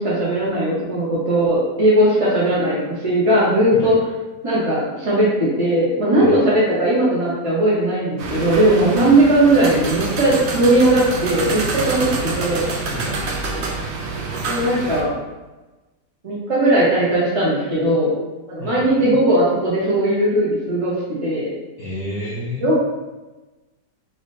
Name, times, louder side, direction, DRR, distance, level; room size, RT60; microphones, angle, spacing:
voice 1, 0.0-4.0 4.4-12.1 12.3-12.7 14.4-15.1 16.2-18.1 18.5-20.9 21.2-21.5 22.6-22.8, right 1 dB, 25° right, -9 dB, 0.7 m, -18 dB
sound 1, 8.2-15.0, right 3 dB, 60° right, 0.7 m, -26 dB
voice 2, 12.9-13.2 18.6-19.2 21.8-22.7, left 1 dB, 70° left, -12 dB, 2.2 m, -31 dB
4.7 x 2.9 x 3.3 m, 1.1 s
omnidirectional pair, 1.8 m